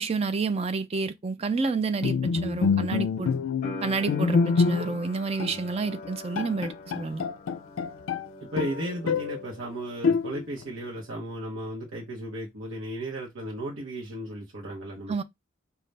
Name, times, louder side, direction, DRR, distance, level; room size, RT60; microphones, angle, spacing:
voice 1, 0.0-3.3 3.8-7.2 15.1-15.2, right 4 dB, 30° right, 0.4 m, -29 dB
Bowed string instrument, 2.0-5.1 5.4-5.6 6.0-6.1 6.4-8.3 8.6-9.4 10.0-10.6, left 5 dB, 90° left, 0.4 m, -26 dB
sound 1, 3.6-10.4 10.7-11.6, left 1 dB, 35° left, 0.7 m, -44 dB
voice 2, 8.5-15.2, right 1 dB, 80° right, 0.9 m, -35 dB
5.2 x 2.3 x 3.2 m
head